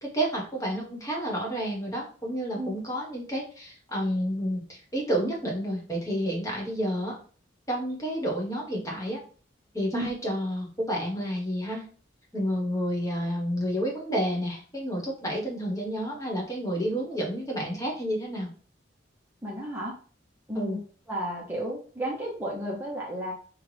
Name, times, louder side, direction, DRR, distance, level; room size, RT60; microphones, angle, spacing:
voice 1, 0.0-7.2 7.7-9.2 9.7-11.9 12.3-18.5 20.5-20.8, equal, 20° left, -2 dB, 1.3 m, -30 dB
voice 2, 19.4-20.0 20.5-20.8 21.1-23.3, right 1 dB, 10° right, -4 dB, 0.8 m, -32 dB
5.7 x 2.4 x 3.3 m, 0.42 s
head